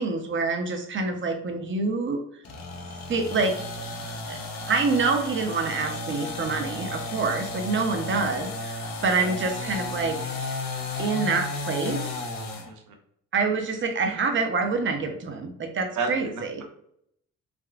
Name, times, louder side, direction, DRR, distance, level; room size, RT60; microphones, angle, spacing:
voice 1, 0.0-2.2 3.1-3.6 4.3-4.4 4.7-10.2 11.0-12.0 13.3-16.6, right 4 dB, 40° right, 5 dB, 0.7 m, -26 dB
sound 1, 2.4-12.7, left 2 dB, 65° left, 0.7 m, -34 dB
voice 2, 15.9-16.6, right 4 dB, 85° right, 3 dB, 0.7 m, -32 dB
3.6 x 2.3 x 2.3 m, 0.71 s
cardioid pair, 90°, 30 cm